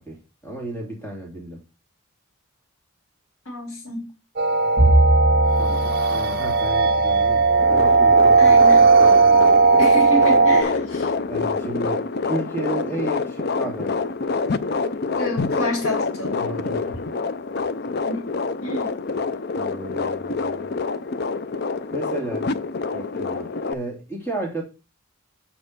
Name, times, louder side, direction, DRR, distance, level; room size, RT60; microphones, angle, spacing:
voice 1, 0.4-1.6 5.5-9.8 11.3-14.0 16.4-16.9 19.5-20.7 21.9-22.5 22.9-24.6, right 1 dB, 10° left, 2.6 m, -33 dB
voice 2, 3.4-4.1 8.4-8.9 9.8-11.1 15.2-16.4 18.1-18.3 18.6-19.0, equal, 75° left, 2.9 m, -29 dB
sound 1, 4.4-10.6, right 4 dB, 45° right, 0.8 m, -16 dB
Bowed string instrument, 4.8-9.2, right 2 dB, 30° left, 3.0 m, -23 dB
sound 2, 7.6-23.7, left 4 dB, 45° left, 0.4 m, -27 dB
7.2 x 4.3 x 6.6 m
head